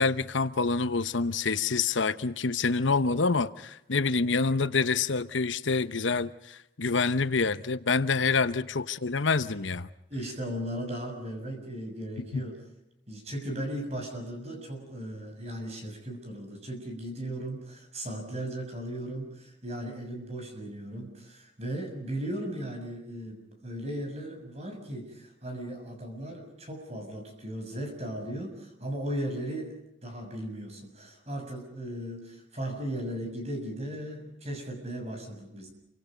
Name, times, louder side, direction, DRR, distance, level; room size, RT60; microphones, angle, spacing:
voice 1, 0.0-9.9 12.3-12.4, left 4 dB, 80° left, 1.0 m, -27 dB
voice 2, 10.1-12.6 13.1-35.7, right 1 dB, 35° right, 6.7 m, -37 dB
28.5 x 24.5 x 5.2 m
head